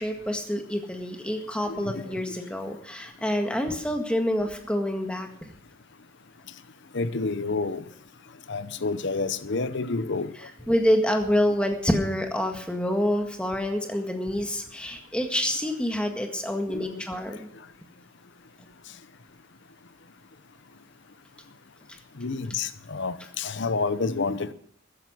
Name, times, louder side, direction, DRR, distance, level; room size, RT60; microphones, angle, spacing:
voice 1, 0.0-5.5 10.7-17.5, equal, 5° left, 4 dB, 1.7 m, -27 dB
voice 2, 1.7-2.4 6.9-7.8 8.5-10.3 16.7-17.0 22.2-24.5, left 3 dB, 55° left, 14 dB, 0.8 m, -29 dB
14.0 x 10.5 x 6.3 m, 0.65 s
head